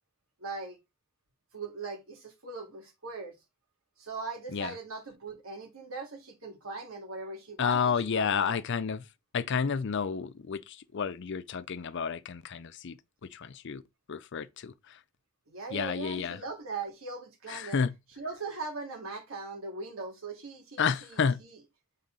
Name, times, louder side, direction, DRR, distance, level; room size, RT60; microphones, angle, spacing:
voice 1, 0.4-0.8 1.5-3.3 4.0-8.6 15.5-17.8 18.2-21.6, right 3 dB, 80° right, 2.4 m, -40 dB
voice 2, 7.6-9.0 9.3-13.0 13.3-13.8 14.1-14.7 15.7-16.4 17.5-17.9 20.8-21.4, left 6 dB, 60° left, 0.5 m, -30 dB
7.2 x 3.7 x 3.8 m
head